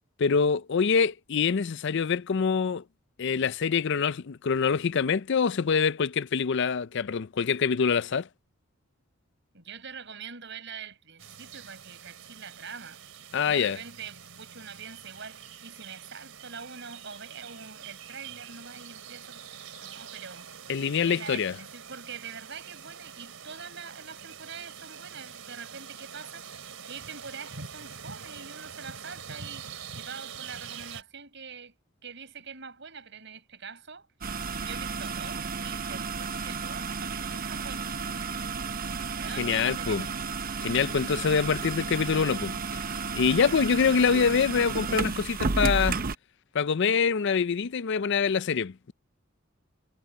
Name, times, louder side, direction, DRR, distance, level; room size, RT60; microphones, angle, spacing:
voice 1, 0.2-2.8 3.2-8.3 13.3-13.8 20.7-21.6 39.4-40.0 40.6-42.8 43.1-46.0 46.5-48.9, left 6 dB, 60° left, 0.5 m, -25 dB
voice 2, 9.5-13.0 13.5-20.5 21.0-31.7 32.0-34.1 34.6-38.2 39.2-40.1, right 6 dB, 60° right, 5.9 m, -44 dB
sound 1, 11.2-31.0, right 7 dB, 75° right, 4.0 m, -45 dB
sound 2, 34.2-46.1, right 4 dB, 45° right, 0.7 m, -32 dB
head